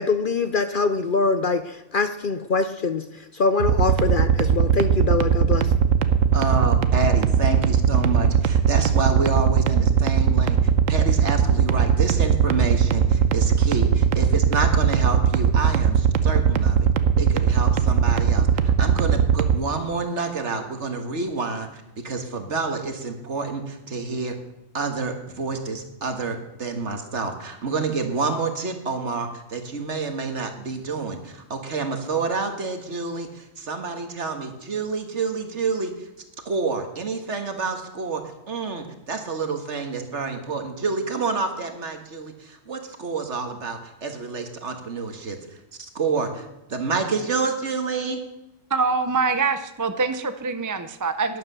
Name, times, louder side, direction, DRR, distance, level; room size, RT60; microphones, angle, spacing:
voice 1, 0.0-5.7, left 4 dB, 50° left, 10 dB, 0.7 m, -24 dB
sound 1, 3.6-19.6, right 8 dB, 85° right, 1.2 m, -19 dB
voice 2, 6.3-16.8 17.2-24.4 24.7-36.1 36.5-45.4 45.8-48.2, right 4 dB, 60° right, 6 dB, 1.9 m, -28 dB
voice 3, 48.7-51.4, right 4 dB, 20° right, 10 dB, 0.5 m, -24 dB
12.0 x 10.5 x 6.9 m, 0.95 s
omnidirectional pair, 1.3 m